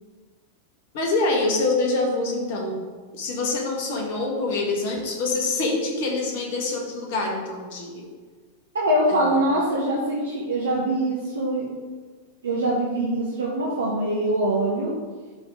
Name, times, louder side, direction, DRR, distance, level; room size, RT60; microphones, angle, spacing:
voice 1, 0.9-2.9 3.1-8.0 9.1-9.4, left 3 dB, 50° left, 1 dB, 1.7 m, -25 dB
voice 2, 8.7-11.7 12.4-14.9, right 1 dB, 70° right, -3 dB, 1.1 m, -23 dB
11.0 x 4.0 x 3.6 m, 1.4 s
figure-of-eight pair, 90°, 0 cm